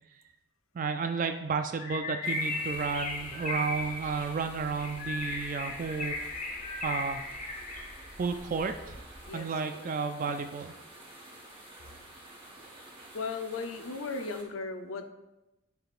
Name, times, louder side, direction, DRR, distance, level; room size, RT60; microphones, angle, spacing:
voice 1, 0.7-6.1 6.8-7.2 8.2-9.0 9.3-10.7, right 5 dB, 40° right, 7 dB, 0.3 m, -32 dB
Bird, 1.8-8.1, left 2 dB, 40° left, 0.8 m, -36 dB
sound 1, 2.2-14.4, right 1 dB, 25° right, 1.2 m, -50 dB
sound 2, 2.7-9.3, equal, ahead, 1.1 m, -52 dB
voice 2, 9.3-10.0 13.1-15.1, left 4 dB, 85° left, 7 dB, 0.6 m, -37 dB
10.5 x 4.9 x 2.5 m, 0.99 s
head